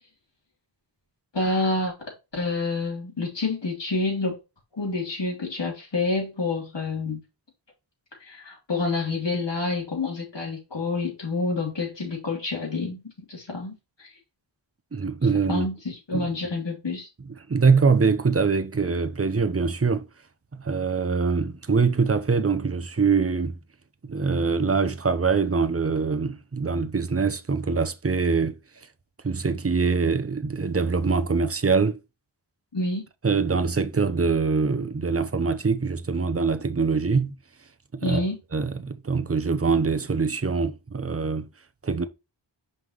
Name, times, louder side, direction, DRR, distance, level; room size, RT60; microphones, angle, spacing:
voice 1, 1.3-1.9 2.3-4.4 4.8-7.2 8.2-13.0 13.3-14.1 15.5-17.1 32.7-33.0 38.0-38.4, left 3 dB, 65° left, 3.2 m, -28 dB
voice 2, 14.9-15.7 16.1-16.3 17.5-20.1 20.5-23.6 24.0-28.6 29.2-32.0 33.2-37.3 37.9-38.2 38.5-41.5 41.8-42.1, right 5 dB, 30° right, 0.8 m, -23 dB
5.7 x 5.5 x 3.1 m
wide cardioid pair, 45°, 45 cm